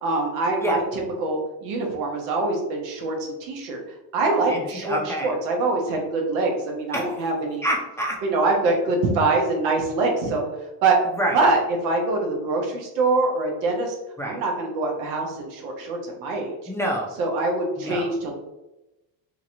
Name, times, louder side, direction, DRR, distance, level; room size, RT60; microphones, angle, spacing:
voice 1, 0.0-3.8 4.1-7.6 8.2-10.5 10.8-11.0 11.3-13.9 14.2-16.5 17.2-18.3, right 3 dB, 90° right, 1 dB, 0.9 m, -24 dB
voice 2, 4.5-5.3 6.9-7.2 7.6-8.2 11.2-11.4 14.2-14.4 16.7-17.2 17.8-18.1, right 1 dB, 5° left, -3 dB, 0.5 m, -27 dB
2.9 x 2.7 x 2.5 m, 0.96 s
supercardioid pair, 90°, 46 cm